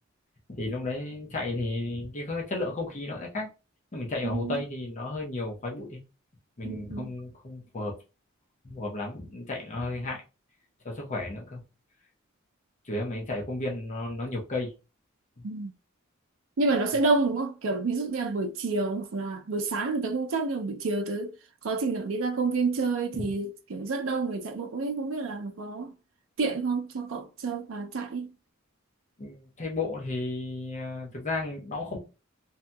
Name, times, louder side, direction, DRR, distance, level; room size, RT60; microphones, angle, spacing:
voice 1, 0.5-3.5 3.9-6.0 6.6-7.9 8.6-10.2 10.8-11.6 12.8-14.7 23.1-23.3 29.2-32.0, left 2 dB, 35° left, 0.7 m, -33 dB
voice 2, 4.2-4.6 6.6-7.1 15.4-15.7 16.6-21.3 21.6-25.9 26.4-28.3, right 3 dB, 75° right, 0.5 m, -29 dB
2.7 x 2.7 x 2.2 m
head